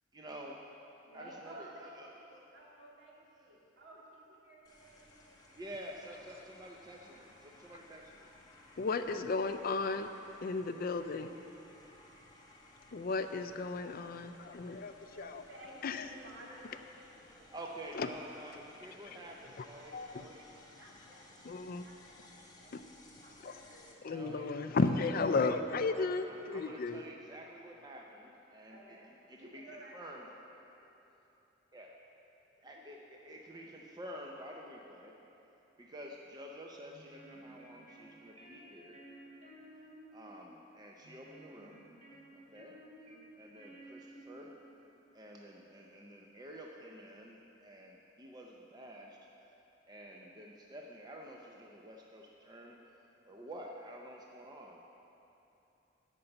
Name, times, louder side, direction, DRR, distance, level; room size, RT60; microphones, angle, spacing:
voice 1, 0.1-0.6 1.1-2.4 5.6-8.3 17.5-20.5 24.1-25.0 25.9-30.3 31.7-32.0 32.6-35.1 35.8-39.0 40.1-41.8 42.3-42.8 43.4-44.6 45.1-49.5 49.9-54.8, right 1 dB, 20° right, 0 dB, 0.6 m, -50 dB
voice 2, 1.0-5.8 8.9-10.5 10.8-11.3 15.0-17.9 18.2-19.5 19.7-20.2 20.7-21.4 21.8-22.3 22.6-24.1 28.7-30.9 32.7-32.8, right 1 dB, 65° right, -4 dB, 2.2 m, -56 dB
sound 1, 4.6-23.9, left 2 dB, 20° left, 1.1 m, -60 dB
voice 3, 8.8-10.1 10.4-11.3 12.9-15.4 15.8-16.1 18.0-18.1 19.9-20.2 21.4-21.9 23.4-23.6 24.0-27.0, left 3 dB, 50° left, 9 dB, 0.4 m, -34 dB
sound 2, 36.8-44.8, right 1 dB, 40° right, 2.6 m, -55 dB
11.5 x 5.4 x 7.9 m, 2.9 s
head